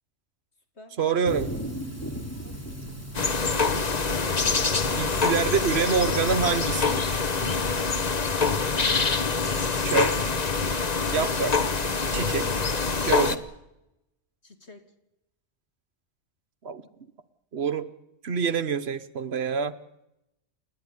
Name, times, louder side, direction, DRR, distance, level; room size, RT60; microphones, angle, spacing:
voice 1, 1.0-1.5 5.0-7.2 9.8-10.3 11.1-11.5 12.1-12.5 13.1-13.4 16.6-16.8 17.5-17.9 18.2-19.7, right 6 dB, 60° right, 12 dB, 1.3 m, -26 dB
sound 1, 1.3-6.6, equal, 10° left, 3.1 m, -37 dB
sound 2, 3.1-13.4, left 4 dB, 35° left, 1.2 m, -25 dB
voice 2, 14.4-14.8, left 3 dB, 60° left, 5 dB, 2.4 m, -47 dB
29.0 x 12.0 x 9.8 m, 0.88 s
omnidirectional pair, 1.3 m